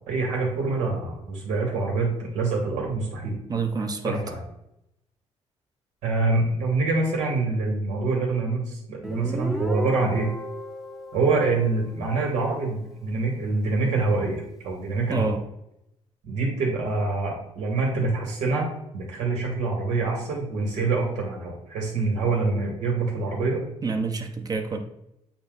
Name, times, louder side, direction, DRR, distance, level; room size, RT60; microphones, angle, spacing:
voice 1, 0.1-3.4 4.0-4.4 6.0-10.3 11.1-15.3 16.2-18.7 18.9-23.6, right 3 dB, 90° right, -2 dB, 2.3 m, -25 dB
voice 2, 3.5-4.2 15.1-15.4 23.8-24.8, right 4 dB, 35° right, 6 dB, 0.8 m, -27 dB
Guitar, 9.0-12.5, equal, 5° right, 0.7 m, -35 dB
8.4 x 2.9 x 4.0 m, 0.81 s
cardioid pair, 105°, 12 cm